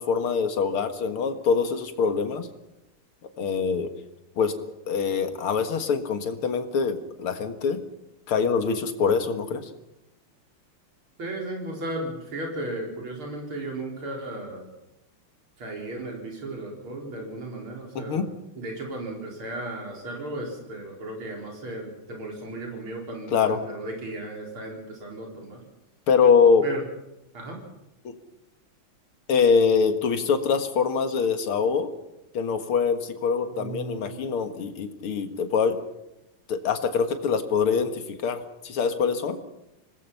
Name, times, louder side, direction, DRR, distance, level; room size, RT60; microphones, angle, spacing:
voice 1, 0.0-2.5 3.4-3.9 4.4-4.5 4.9-7.8 8.3-9.7 18.0-18.3 23.3-23.6 26.1-26.7 28.0-28.1 29.3-31.9 32.3-35.8 36.5-39.4, left 5 dB, 80° left, 8 dB, 2.5 m, -24 dB
voice 2, 11.2-14.7 15.6-18.3 18.6-25.6 26.6-26.8 27.3-27.6 33.5-34.3, right 2 dB, 75° right, 0 dB, 5.4 m, -35 dB
26.0 x 19.0 x 5.7 m, 0.90 s
omnidirectional pair, 2.4 m